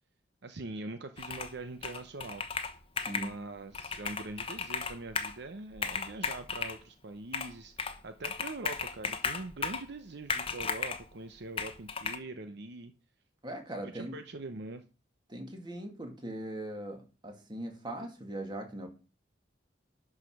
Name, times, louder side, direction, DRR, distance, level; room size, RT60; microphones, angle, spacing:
voice 1, 0.4-2.4 3.1-12.9 13.8-14.8, right 2 dB, 65° right, 8 dB, 0.8 m, -43 dB
Computer keyboard, 1.2-1.6 1.8-3.3 3.7-5.4 5.7-6.8 7.3-8.0 8.2-9.9 10.3-11.0 11.6-12.2, left 5 dB, 30° left, 1.0 m, -35 dB
voice 2, 3.0-3.3 13.4-14.2 15.3-18.9, right 1 dB, 25° right, 3 dB, 2.2 m, -40 dB
11.5 x 4.9 x 5.9 m, 0.34 s
head